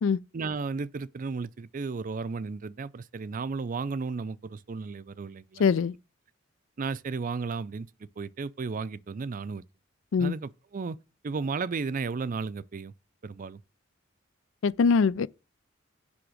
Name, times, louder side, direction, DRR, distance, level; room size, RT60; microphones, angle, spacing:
voice 1, 0.3-5.6 6.8-7.9 8.2-9.6 10.2-11.0 11.2-12.9 13.2-13.6, right 4 dB, 45° right, 0.4 m, -34 dB
voice 2, 5.6-5.9 10.1-10.3 14.6-15.3, left 5 dB, 75° left, 0.4 m, -22 dB
9.9 x 3.5 x 6.2 m
head